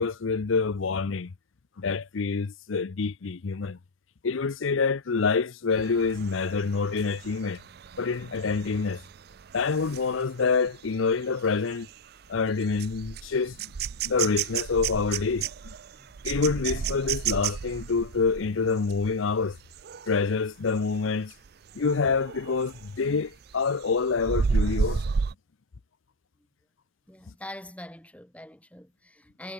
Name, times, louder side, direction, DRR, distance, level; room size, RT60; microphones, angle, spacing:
voice 1, 0.0-1.3 1.8-3.8 4.2-7.6 8.0-9.0 9.5-11.9 12.3-13.6 14.0-15.7 16.2-19.6 20.1-21.3 21.7-25.0, left 4 dB, 75° left, 0.6 m, -27 dB
sound 1, 5.7-20.3 20.7-21.0 21.3-23.0 23.3-25.3, right 6 dB, 50° right, 0.4 m, -33 dB
voice 2, 16.0-16.3 27.1-29.5, left 1 dB, 5° left, 5.5 m, -44 dB
head